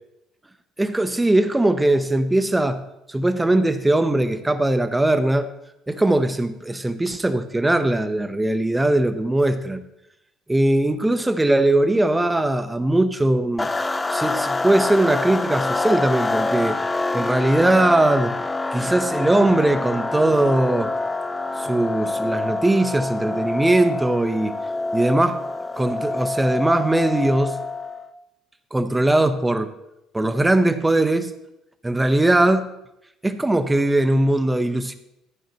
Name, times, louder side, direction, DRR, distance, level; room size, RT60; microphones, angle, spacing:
voice 1, 0.8-5.5 5.9-9.8 10.5-13.7 14.1-18.4 18.7-20.9 21.6-24.6 24.9-25.4 25.8-27.6 28.7-29.7 30.1-31.3 31.8-32.7 33.2-35.0, right 1 dB, 15° right, 10 dB, 1.0 m, -20 dB
sound 1, 13.6-28.1, left 2 dB, 20° left, 0.6 m, -26 dB
14.5 x 9.2 x 3.2 m, 0.85 s
hypercardioid pair, 70°, 0 cm